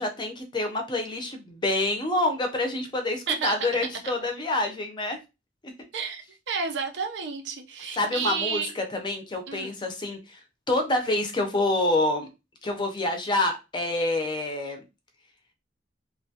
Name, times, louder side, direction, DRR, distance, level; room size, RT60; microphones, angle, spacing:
voice 1, 0.0-5.2 5.6-5.7 8.0-10.4 10.7-12.3 12.6-14.8, left 2 dB, 25° left, 0.5 m, -27 dB
voice 2, 5.9-8.7 9.5-9.8, right 5 dB, 75° right, 0.5 m, -31 dB
2.6 x 2.2 x 2.7 m
head